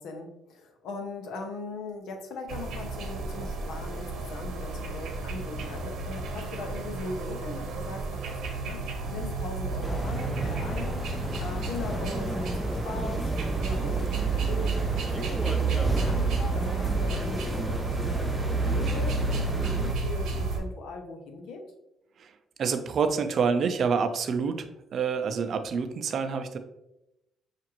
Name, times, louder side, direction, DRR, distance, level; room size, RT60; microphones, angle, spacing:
voice 1, 0.0-8.8 9.1-11.0 11.4-17.6 18.0-21.6, left 3 dB, 85° left, 5 dB, 0.7 m, -39 dB
sound 1, 2.5-20.6, right 5 dB, 75° right, 0.9 m, -31 dB
sound 2, 9.8-19.9, left 1 dB, 5° left, 0.4 m, -33 dB
voice 2, 22.6-24.7 24.9-26.6, right 5 dB, 60° right, 8 dB, 0.4 m, -27 dB
5.7 x 2.5 x 3.0 m, 0.87 s
cardioid pair, 90°, 0 cm